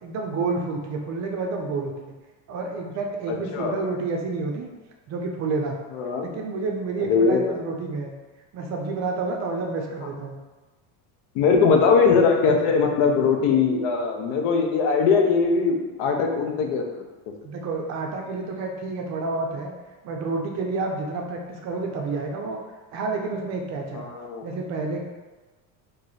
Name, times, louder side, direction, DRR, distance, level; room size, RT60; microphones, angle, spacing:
voice 1, 0.0-2.1 2.5-4.7 5.1-5.8 6.2-8.1 8.5-10.4 17.4-19.7 20.0-22.6 22.9-24.1 24.4-25.0, right 3 dB, 40° right, 2 dB, 0.4 m, -29 dB
voice 2, 3.3-3.7 5.9-6.3 7.0-7.4 11.3-16.8 23.9-24.5, left 5 dB, 75° left, 3 dB, 0.7 m, -21 dB
3.1 x 2.6 x 3.8 m, 1.2 s
cardioid pair, 155°, 43 cm